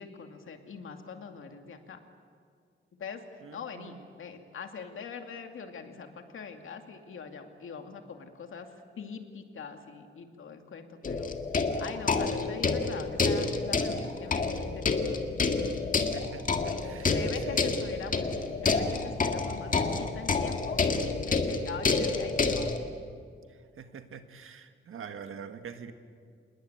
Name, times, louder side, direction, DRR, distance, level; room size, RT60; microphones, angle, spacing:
voice 1, 0.0-2.0 3.0-11.3 11.8-15.2 17.1-18.2 18.6-20.8 21.2-22.8, left 6 dB, 75° left, 5 dB, 2.5 m, -42 dB
voice 2, 3.4-4.1 16.1-17.7 23.8-25.9, right 7 dB, 85° right, 8 dB, 1.7 m, -45 dB
sound 1, 11.0-22.8, left 4 dB, 40° left, 1.8 m, -29 dB
27.0 x 21.0 x 9.0 m, 2.2 s
wide cardioid pair, 165°, 21 cm